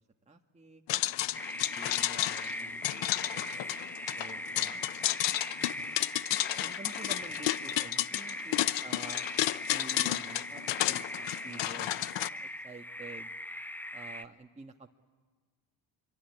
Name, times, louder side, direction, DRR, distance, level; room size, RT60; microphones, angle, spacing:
voice 1, 0.0-0.8 1.6-3.0 3.3-3.7 4.1-4.7 6.6-9.3 9.7-13.3 13.9-14.9, right 4 dB, 15° right, 2 dB, 1.4 m, -49 dB
voice 2, 0.9-1.5 2.8-3.9 4.6-6.2 8.7-8.9, left 3 dB, 85° left, 2 dB, 7.4 m, -58 dB
sound 1, 0.9-12.3, left 15 dB, 60° left, 0.8 m, -32 dB
sound 2, 1.3-14.3, left 1 dB, 5° left, 0.9 m, -41 dB
24.0 x 24.0 x 9.7 m, 1.4 s
supercardioid pair, 75°, 50 cm